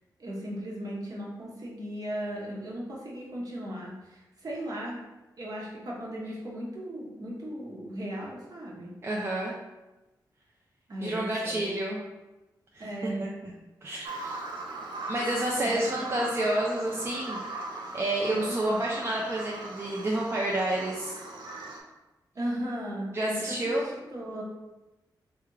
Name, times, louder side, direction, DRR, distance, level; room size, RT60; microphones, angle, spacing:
voice 1, 0.2-5.0 5.4-8.9 10.9-11.7 12.8-13.3 14.1-14.2 15.2-15.3 15.6-16.2 18.3-18.8 22.3-24.4, equal, 55° right, -4 dB, 0.9 m, -37 dB
voice 2, 9.0-9.5 11.0-12.0 12.7-13.1 13.4-13.5 13.8-14.4 15.1-17.4 17.9-21.2 23.1-23.8, right 1 dB, 35° right, -3 dB, 0.5 m, -29 dB
Bird vocalization bird call bird song, 14.0-21.8, right 2 dB, 85° right, 0.5 m, -39 dB
3.3 x 2.4 x 3.2 m, 1.1 s
cardioid pair, 80°, 8 cm